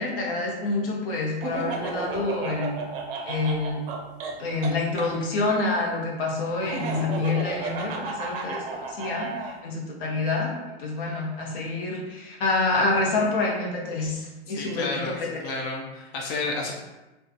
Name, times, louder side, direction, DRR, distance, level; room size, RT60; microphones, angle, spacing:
voice 1, 0.0-2.7 3.2-3.8 4.4-10.5 10.8-15.3, left 3 dB, 55° left, -1 dB, 0.8 m, -27 dB
Laughter, 1.4-5.1 6.6-9.5, right 4 dB, 60° right, 0.5 m, -33 dB
voice 2, 14.5-15.2 15.4-16.7, left 3 dB, 35° left, -1 dB, 0.4 m, -31 dB
2.5 x 2.4 x 2.4 m, 1.0 s
hypercardioid pair, 110°, 32 cm